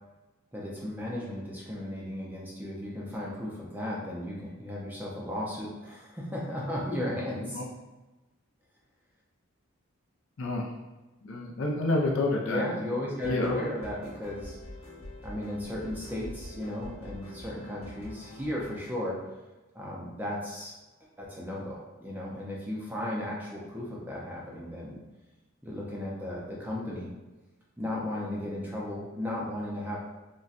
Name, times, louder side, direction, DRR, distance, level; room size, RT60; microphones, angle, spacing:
voice 1, 0.5-7.6 12.4-14.6 15.2-19.2 19.7-20.7 21.2-25.0 25.6-27.1 27.8-30.0, left 1 dB, 10° right, -5 dB, 0.5 m, -35 dB
voice 2, 10.4-10.7 11.2-12.6 13.2-13.6, left 2 dB, 60° left, -1 dB, 0.5 m, -28 dB
sound 1, 13.1-18.8, left 1 dB, 80° left, 1.0 m, -45 dB
4.0 x 2.2 x 2.4 m, 1.1 s
head